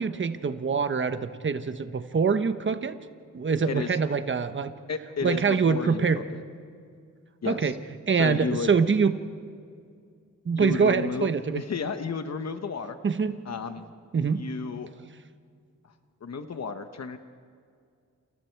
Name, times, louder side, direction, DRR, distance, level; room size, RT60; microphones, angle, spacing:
voice 1, 0.0-2.9 3.3-4.7 5.2-6.2 7.4-7.7 8.1-9.1 10.4-11.6 13.0-13.5 14.1-14.4, right 5 dB, 40° right, 9 dB, 1.1 m, -24 dB
voice 2, 3.7-4.0 4.9-6.4 7.4-7.8 8.2-8.7 10.6-13.0 13.4-13.8 14.3-14.9 15.8-15.9 16.2-17.2, left 5 dB, 60° left, 8 dB, 1.1 m, -33 dB
29.5 x 28.0 x 4.6 m, 2.3 s
wide cardioid pair, 145°, 30 cm